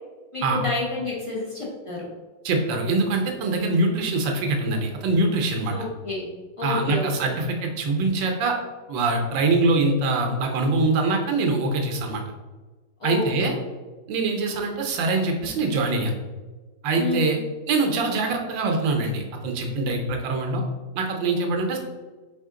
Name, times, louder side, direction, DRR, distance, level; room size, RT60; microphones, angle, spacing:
voice 1, 0.3-2.1 5.7-6.3 6.6-7.3 13.0-13.5 16.9-17.4, left 3 dB, 30° left, -5 dB, 0.6 m, -29 dB
voice 2, 2.4-5.8 6.6-8.6 8.9-12.2 13.0-13.5 14.1-16.1 16.8-17.4 17.7-20.6 20.9-21.8, right 3 dB, 85° right, 2 dB, 1.5 m, -23 dB
4.8 x 2.8 x 3.6 m, 1.3 s
omnidirectional pair, 2.0 m